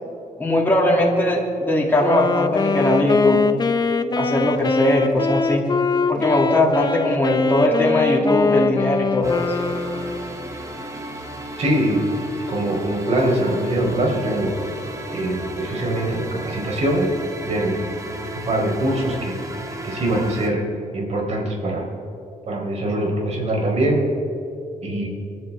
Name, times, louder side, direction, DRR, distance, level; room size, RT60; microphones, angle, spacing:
voice 1, 0.4-3.4 4.2-5.6 6.1-9.5, left 1 dB, 15° left, -3 dB, 2.7 m, -20 dB
Wind instrument woodwind instrument, 2.0-10.3, left 4 dB, 30° left, 0.7 m, -22 dB
sound 1, 9.2-20.5, right 1 dB, 25° right, 1.7 m, -34 dB
voice 2, 11.6-12.0 12.5-14.5 15.1-17.1 17.4-18.2 18.4-19.4 19.8-20.6 20.9-21.8 22.5-24.0 24.8-25.1, right 1 dB, 55° right, -1 dB, 4.2 m, -23 dB
27.0 x 10.5 x 3.6 m, 2.7 s
cardioid pair, 85°, 14 cm